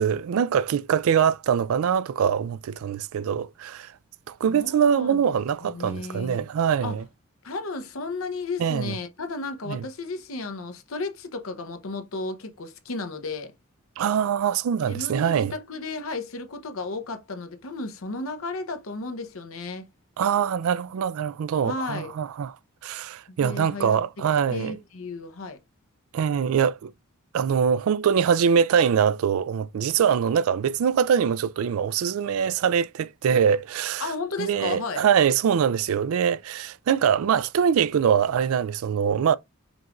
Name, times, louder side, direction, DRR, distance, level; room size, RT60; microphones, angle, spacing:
voice 1, 0.0-3.9 4.3-7.0 8.6-9.0 9.7-9.8 14.0-15.5 20.2-22.5 22.8-24.7 26.1-26.9 27.3-34.1 34.4-39.4, right 7 dB, 70° right, 0.3 m, -23 dB
voice 2, 4.5-5.4 5.6-6.4 6.8-7.0 7.4-13.5 14.8-19.9 21.6-22.1 23.3-24.0 24.5-25.6 34.0-35.0, left 3 dB, 65° left, 0.8 m, -33 dB
5.3 x 2.5 x 2.9 m
head